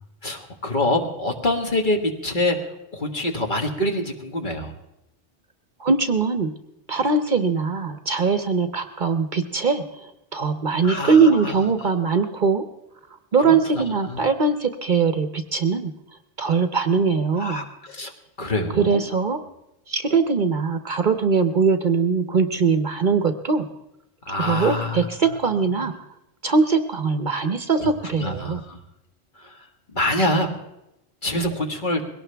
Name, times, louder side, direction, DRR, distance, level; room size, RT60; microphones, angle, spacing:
voice 1, 0.2-2.6 2.9-4.7 10.8-11.6 13.5-14.2 17.4-18.1 18.4-19.0 24.3-25.1 25.8-25.9 27.7-28.8 29.4-29.7 29.9-30.5 31.2-32.0, left 1 dB, 45° left, 3 dB, 1.8 m, -26 dB
voice 2, 5.8-6.5 6.9-12.7 13.3-15.9 16.4-17.6 18.8-19.4 19.9-23.7 24.4-25.9 26.4-28.6, right 5 dB, 50° right, 8 dB, 0.9 m, -21 dB
21.5 x 18.0 x 3.4 m, 0.87 s
omnidirectional pair, 1.2 m